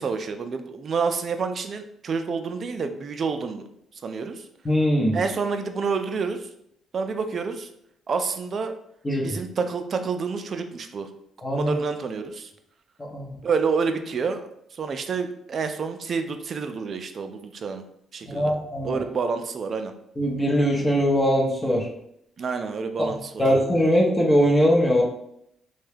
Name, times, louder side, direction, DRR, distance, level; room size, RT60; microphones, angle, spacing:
voice 1, 0.0-3.6 4.0-4.4 5.1-6.4 6.9-7.7 8.1-8.7 9.2-11.1 11.5-12.5 13.4-17.8 18.1-18.5 18.8-19.9 22.4-23.4, right 5 dB, 50° right, 7 dB, 0.4 m, -28 dB
voice 2, 4.6-5.2 9.0-9.3 11.4-11.7 13.1-13.3 18.2-19.0 20.2-21.9 23.4-25.0, equal, 25° left, -2 dB, 0.7 m, -21 dB
2.7 x 2.2 x 3.3 m, 0.73 s
cardioid pair, 90°, 0 cm